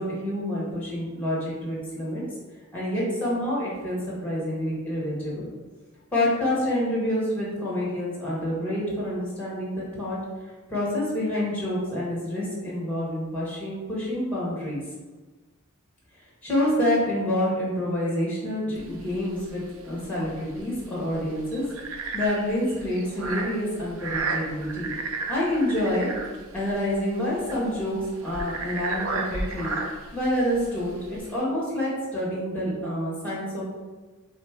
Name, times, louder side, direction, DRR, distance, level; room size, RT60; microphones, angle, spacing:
voice 1, 0.0-2.2 2.7-5.5 6.1-10.2 10.7-14.8 16.4-21.6 21.9-24.9 25.3-26.1 26.5-29.7 30.1-33.7, left 1 dB, 5° left, -6 dB, 1.4 m, -27 dB
sound 1, 18.7-31.4, right 3 dB, 65° right, 0.5 m, -34 dB
3.5 x 3.3 x 4.5 m, 1.3 s
head